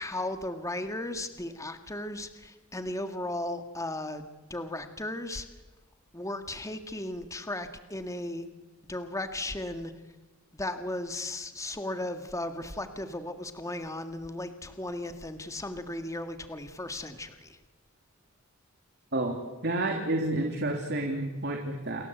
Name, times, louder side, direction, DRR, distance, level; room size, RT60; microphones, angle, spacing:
voice 1, 0.0-4.3 4.5-5.5 6.1-8.5 8.9-9.9 10.5-17.6, left 1 dB, 15° left, 8 dB, 1.9 m, -36 dB
voice 2, 19.6-22.1, right 2 dB, 55° right, 2 dB, 3.4 m, -30 dB
29.0 x 23.0 x 8.2 m, 1.1 s
head